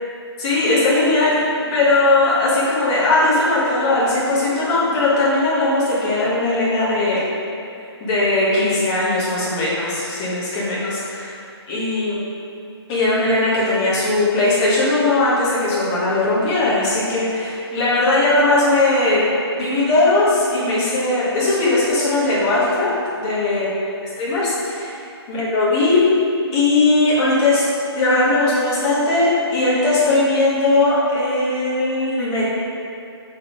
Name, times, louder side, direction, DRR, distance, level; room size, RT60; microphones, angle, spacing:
voice 1, 0.4-1.4 1.7-7.2 8.0-11.3 11.7-12.2 12.9-22.9 23.2-23.7 24.2-25.0 25.3-26.1 26.5-27.6 28.0-32.4, left 2 dB, 15° left, -8 dB, 1.1 m, -18 dB
5.4 x 4.2 x 4.7 m, 2.6 s
hypercardioid pair, 170°, 14 cm